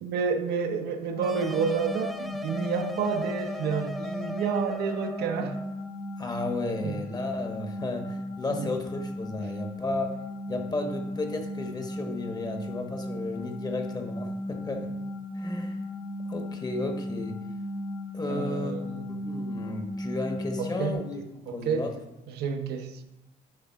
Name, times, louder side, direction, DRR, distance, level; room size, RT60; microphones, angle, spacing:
voice 1, 0.0-5.6 6.8-7.0 8.5-8.7 18.3-19.1 20.6-21.0 21.5-21.9 22.3-23.0, right 6 dB, 75° right, 6 dB, 0.8 m, -30 dB
sound 1, 1.1-20.9, left 1 dB, 85° left, 1.8 m, -36 dB
sound 2, 1.2-5.7, left 1 dB, ahead, 0.5 m, -37 dB
voice 2, 6.2-10.1 10.5-14.9 15.3-15.8 16.3-17.4 18.1-18.8 19.1-21.2 21.5-21.9, left 2 dB, 25° left, 4 dB, 1.1 m, -33 dB
10.0 x 3.5 x 4.6 m, 0.91 s
cardioid pair, 110°, 17 cm